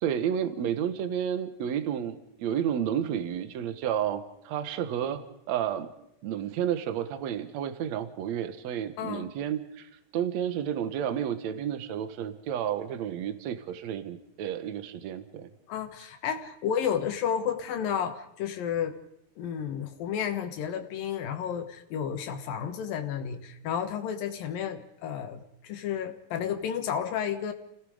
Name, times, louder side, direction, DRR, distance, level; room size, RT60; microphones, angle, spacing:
voice 1, 0.0-5.2 5.5-5.9 6.2-15.5, right 9 dB, 60° right, 10 dB, 2.3 m, -31 dB
voice 2, 9.0-9.3 15.7-19.0 19.4-27.5, left 8 dB, 85° left, 7 dB, 3.1 m, -32 dB
29.5 x 18.0 x 5.0 m, 0.76 s
omnidirectional pair, 3.9 m